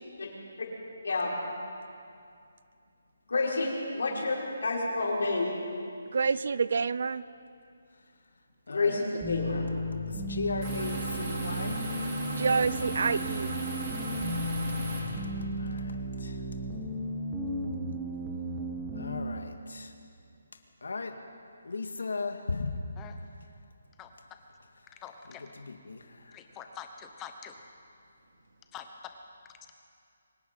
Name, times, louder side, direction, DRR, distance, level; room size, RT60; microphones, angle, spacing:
voice 1, 3.3-5.5 8.7-9.7, left 3 dB, 65° left, -2 dB, 5.7 m, -29 dB
voice 2, 6.1-7.2 12.3-13.5, right 5 dB, 55° right, 17 dB, 0.6 m, -27 dB
voice 3, 8.7-9.0 10.1-12.1 15.6-16.4 18.9-19.9 20.8-21.2 21.6-22.9 25.4-26.4, left 3 dB, 85° left, 5 dB, 2.0 m, -37 dB
sound 1, 9.2-19.2, equal, 5° right, 1.4 m, -35 dB
sound 2, 10.6-15.0, right 2 dB, 20° right, 5.1 m, -36 dB
voice 4, 25.0-25.5 26.3-27.5 28.7-28.9, left 8 dB, 10° left, 5 dB, 1.1 m, -45 dB
24.5 x 20.5 x 5.6 m, 2.4 s
hypercardioid pair, 175°, 0 cm